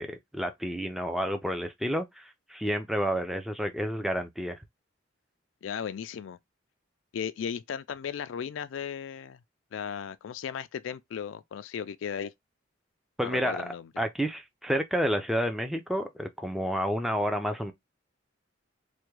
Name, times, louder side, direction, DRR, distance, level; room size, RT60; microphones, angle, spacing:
voice 1, 0.0-4.6 13.2-17.7, equal, ahead, 0.4 m, -30 dB
voice 2, 5.6-6.4 7.1-9.4 9.7-12.3 13.2-13.9, left 7 dB, 75° left, 0.3 m, -36 dB
3.4 x 2.2 x 3.1 m
head